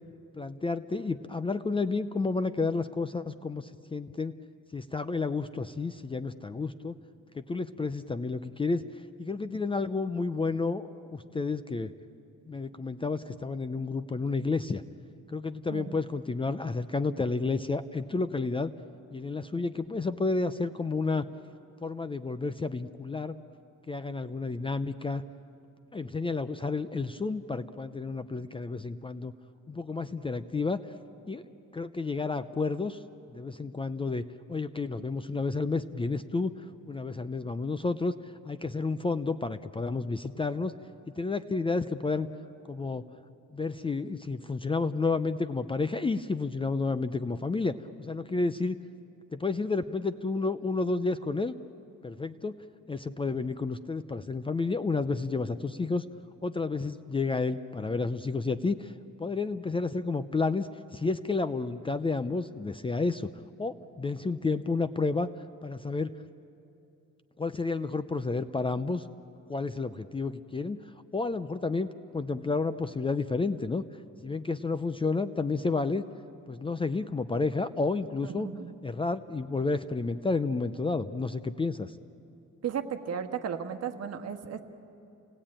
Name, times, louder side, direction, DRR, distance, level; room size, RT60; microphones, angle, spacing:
voice 1, 0.4-4.3 4.7-6.9 7.3-8.9 9.2-11.9 12.5-14.8 15.3-18.7 19.1-21.3 21.8-23.3 23.9-25.2 25.9-29.3 29.7-30.9 31.3-31.4 31.7-33.0 33.3-34.2 34.5-36.5 36.9-38.1 38.5-40.7 41.1-42.3 42.7-43.0 43.5-48.8 49.3-51.5 52.0-52.6 52.9-56.0 56.4-58.9 59.2-63.3 63.6-65.3 65.6-66.1 67.4-69.0 69.5-70.8 71.1-71.9 72.1-73.8 74.2-76.0 76.5-78.5 78.8-82.0, left 3 dB, 15° left, 11 dB, 0.5 m, -31 dB
voice 2, 78.2-78.8 82.6-84.6, right 8 dB, 55° right, 6 dB, 1.5 m, -35 dB
29.0 x 19.0 x 8.8 m, 2.7 s
cardioid pair, 135°, 31 cm